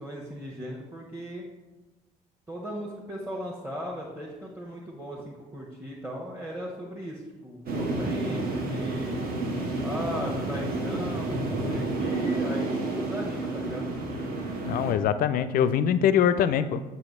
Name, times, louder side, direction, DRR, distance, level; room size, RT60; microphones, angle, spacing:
voice 1, 0.0-1.4 2.5-9.3 9.8-13.9, equal, 10° right, -3 dB, 1.1 m, -37 dB
sound 1, 7.7-14.9, right 2 dB, 50° right, 1.0 m, -30 dB
voice 2, 14.7-16.8, left 9 dB, 50° left, 12 dB, 0.4 m, -23 dB
7.5 x 2.8 x 5.3 m, 1.1 s
figure-of-eight pair, 40°, 19 cm